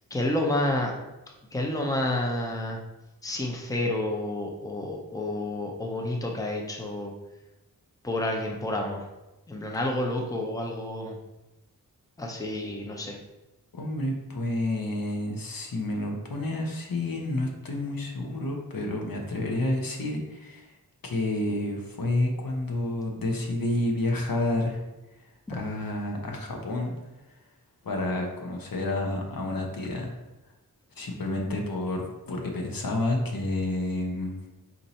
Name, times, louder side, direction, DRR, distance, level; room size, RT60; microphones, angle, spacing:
voice 1, 0.1-0.9 1.5-2.8 3.2-7.1 8.0-9.0 9.5-11.2 12.2-13.2 25.5-25.6, left 1 dB, 10° left, 0 dB, 0.7 m, -29 dB
voice 2, 13.7-20.7 21.0-24.8 25.5-26.9 27.8-30.1 31.0-34.4, left 1 dB, 65° left, 1 dB, 0.9 m, -29 dB
4.4 x 2.7 x 4.1 m, 1.0 s
wide cardioid pair, 60°, 36 cm